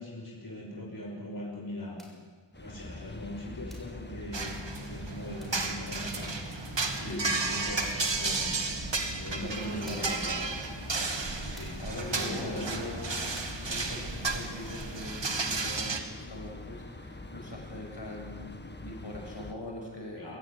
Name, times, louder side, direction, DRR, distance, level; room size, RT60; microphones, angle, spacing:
voice 1, 0.0-2.0 2.5-6.7 7.0-10.4 11.5-11.8 12.1-13.2 20.2-20.4, equal, 50° left, -3 dB, 5.9 m, -41 dB
sound 1, 2.0-2.3 3.7-4.0 5.4-5.7 7.5-7.6 8.3-8.6 9.9-10.2 11.6-11.9 13.4-13.7, equal, ahead, 7.1 m, -53 dB
sound 2, 2.5-19.5, left 2 dB, 25° left, 1.6 m, -44 dB
sound 3, 4.3-16.0, right 3 dB, 70° right, 2.1 m, -33 dB
voice 2, 9.3-10.6 11.8-20.4, left 1 dB, 65° left, -1 dB, 6.6 m, -42 dB
24.5 x 14.5 x 9.7 m, 1.5 s
wide cardioid pair, 50°, 45 cm